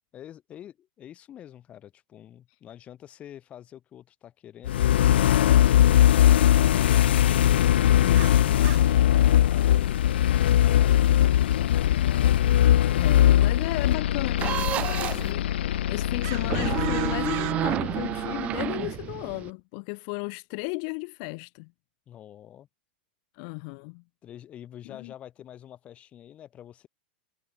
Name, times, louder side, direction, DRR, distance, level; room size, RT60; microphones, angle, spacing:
voice 1, 0.1-7.2 22.1-22.7 24.2-26.9, left 11 dB, 25° left, 1.9 m, -47 dB
sound 1, 4.6-18.5, left 12 dB, 90° left, 0.4 m, -21 dB
voice 2, 8.0-9.1 12.9-21.7 23.3-24.0 24.8-25.1, left 40 dB or more, 45° left, 1.3 m, -35 dB
sound 2, 8.1-9.0 10.5-10.6 10.9-11.0 11.5-11.6 13.0-13.1 14.3-14.4 16.2-17.5, right 35 dB, 40° right, 3.0 m, -39 dB
sound 3, 14.4-15.3 16.4-19.5, right 13 dB, 25° right, 0.5 m, -30 dB
supercardioid pair, 155°, 5 cm